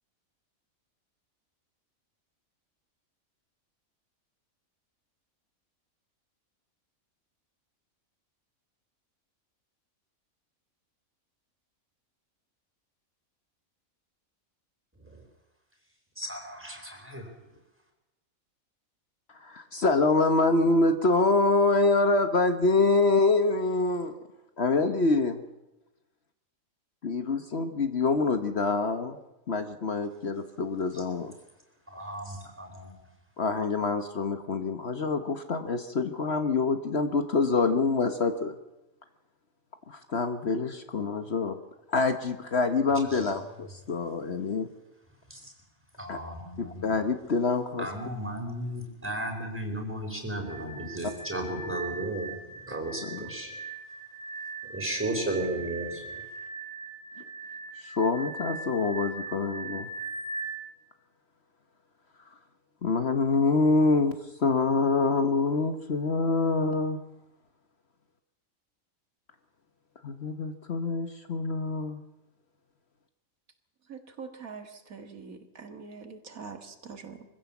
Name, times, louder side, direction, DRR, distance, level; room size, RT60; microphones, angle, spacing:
voice 1, 16.2-17.5 30.9-31.0 31.9-33.0 43.1-43.3 45.3-45.5 46.0-46.9 47.8-53.6 54.6-56.2, right 1 dB, 10° right, 3 dB, 4.3 m, -35 dB
voice 2, 19.3-24.1 24.6-25.4 27.0-29.2 29.5-31.3 33.4-38.5 39.9-41.6 41.9-44.7 46.1-46.2 46.6-47.9 53.0-53.2 57.8-59.9 62.8-67.0 70.0-72.0, left 3 dB, 50° left, 7 dB, 1.4 m, -26 dB
sound 1, 50.4-60.6, right 3 dB, 90° left, 3.8 m, -40 dB
voice 3, 73.9-77.2, right 5 dB, 75° right, 6 dB, 2.2 m, -44 dB
24.0 x 16.0 x 7.2 m, 0.99 s
omnidirectional pair, 1.5 m